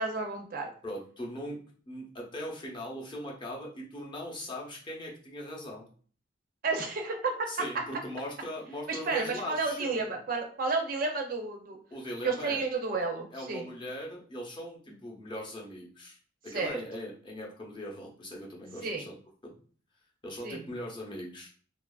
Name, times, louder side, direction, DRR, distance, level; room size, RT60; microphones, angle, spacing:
voice 1, 0.0-0.7 6.6-7.5 8.9-11.8 12.2-13.6 16.5-16.8 18.8-19.0 20.4-20.6, right 3 dB, 50° right, 3 dB, 0.5 m, -31 dB
voice 2, 0.8-1.6 1.9-5.9 7.5-10.2 11.9-12.6 13.0-13.1 13.3-16.2 16.4-19.1 19.4-19.5 20.2-21.5, equal, 25° left, -2 dB, 0.6 m, -40 dB
2.8 x 2.4 x 2.3 m, 0.44 s
head